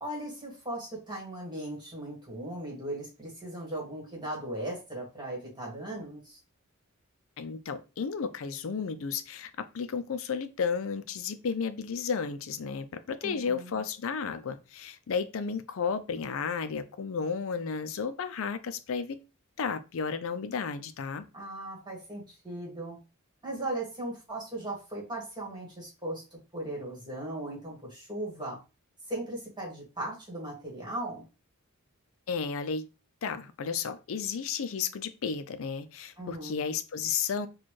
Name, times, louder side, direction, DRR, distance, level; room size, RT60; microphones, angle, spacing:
voice 1, 0.0-6.4 13.2-13.8 21.3-23.0 23.4-26.2 26.5-28.6 29.1-31.2 36.2-36.6, right 1 dB, 20° right, 1.6 m, -38 dB
voice 2, 7.4-19.2 19.6-21.2 32.3-32.9 33.2-37.5, left 6 dB, 65° left, 0.4 m, -33 dB
4.2 x 2.3 x 3.1 m
head